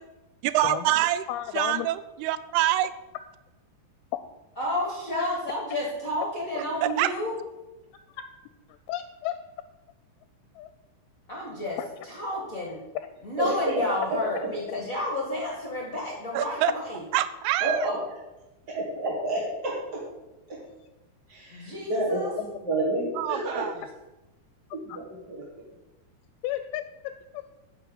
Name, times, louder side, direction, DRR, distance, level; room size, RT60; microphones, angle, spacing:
voice 1, 0.4-1.2 1.5-2.9 6.6-7.1 16.3-16.7 17.1-17.9 23.2-23.7, right 14 dB, 85° right, 14 dB, 2.6 m, -26 dB
voice 2, 1.3-1.9 8.1-8.2 8.9-9.3 10.6-10.7 11.8-11.9 14.7-14.8 24.9-25.0 26.4-27.4, left 13 dB, 80° left, 10 dB, 2.3 m, -33 dB
voice 3, 4.6-7.3 11.3-11.8 12.1-12.8 13.2-17.0 21.5-22.3, left 1 dB, 35° left, -4 dB, 1.4 m, -31 dB
voice 4, 13.4-13.8 14.1-14.2 17.6-18.0 18.7-20.0 20.5-20.6 21.3-23.7 24.7-25.4, right 2 dB, 55° right, -4 dB, 1.1 m, -29 dB
10.0 x 5.6 x 7.2 m, 1.0 s
omnidirectional pair, 4.6 m